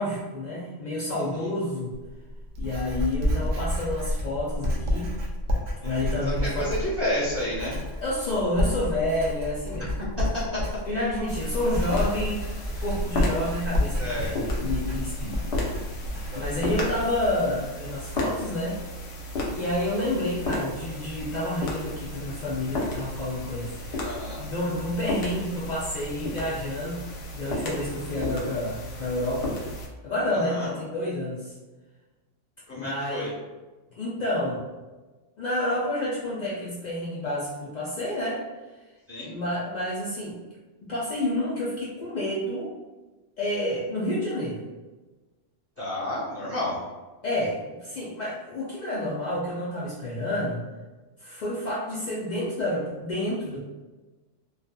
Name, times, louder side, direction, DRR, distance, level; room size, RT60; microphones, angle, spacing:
voice 1, 0.0-1.9 2.6-5.1 5.8-6.7 8.0-9.9 10.8-12.5 12.8-15.4 16.3-18.8 19.5-24.0 24.4-27.0 27.3-29.6 30.0-31.5 32.7-33.3 34.0-34.6 35.4-38.4 39.2-40.4 40.8-42.7 43.4-44.6 47.2-50.6 51.2-53.6, left 1 dB, 85° left, -6 dB, 0.4 m, -29 dB
Writing, 1.9-17.3, left 1 dB, 65° right, 0.7 m, -30 dB
voice 2, 6.4-7.7 10.0-10.1 10.3-10.6 14.0-14.3 16.3-16.8 24.0-24.4 30.3-30.7 32.7-33.3 39.1-39.3 45.8-46.8, left 1 dB, 15° right, -9 dB, 0.8 m, -30 dB
sound 1, 11.3-29.9, left 1 dB, 65° left, 0.8 m, -34 dB
2.6 x 2.3 x 2.2 m, 1.2 s
omnidirectional pair, 1.3 m